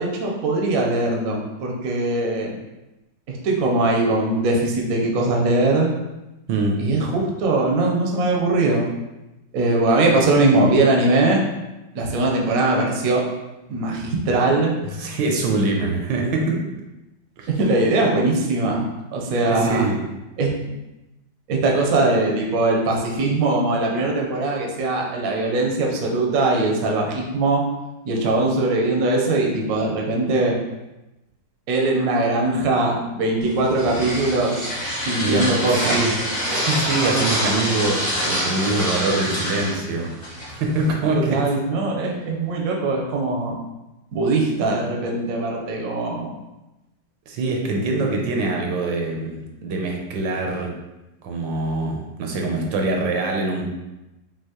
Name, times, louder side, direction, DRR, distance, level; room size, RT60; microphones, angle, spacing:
voice 1, 0.0-2.6 3.3-5.9 6.8-8.8 9.5-11.4 11.9-13.3 13.7-14.7 17.5-18.8 19.1-19.8 20.4-20.5 21.5-27.6 28.0-30.6 31.7-36.0 41.1-43.6 44.1-46.3, right 2 dB, 60° right, -1 dB, 1.0 m, -21 dB
voice 2, 6.5-6.8 15.0-16.6 17.4-17.5 19.5-20.0 35.2-36.1 36.4-40.1 40.5-41.4 47.3-50.7 51.2-53.6, right 2 dB, 75° right, 1 dB, 1.3 m, -24 dB
sound 1, 33.4-40.9, equal, 35° left, 0.8 m, -26 dB
5.6 x 2.8 x 2.9 m, 1.0 s
omnidirectional pair, 2.1 m